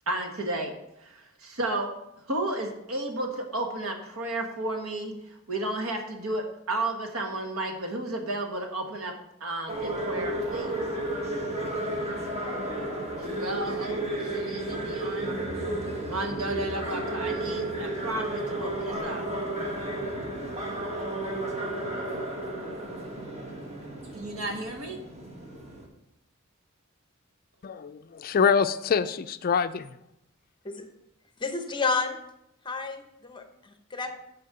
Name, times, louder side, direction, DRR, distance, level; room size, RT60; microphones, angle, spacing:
voice 1, 0.1-0.7 1.6-1.9 2.3-5.1 5.5-9.1 9.4-10.7 13.3-14.0 14.3-15.3 16.0-18.2 18.6-19.2 24.1-25.0, right 2 dB, 75° right, 3 dB, 1.5 m, -32 dB
sound 1, 9.7-25.9, right 1 dB, 30° right, 1.6 m, -32 dB
voice 2, 27.6-29.9, left 6 dB, 45° left, 11 dB, 0.4 m, -25 dB
voice 3, 31.4-32.2 32.6-34.1, left 4 dB, 20° left, 6 dB, 0.8 m, -30 dB
8.4 x 4.5 x 6.8 m, 0.83 s
head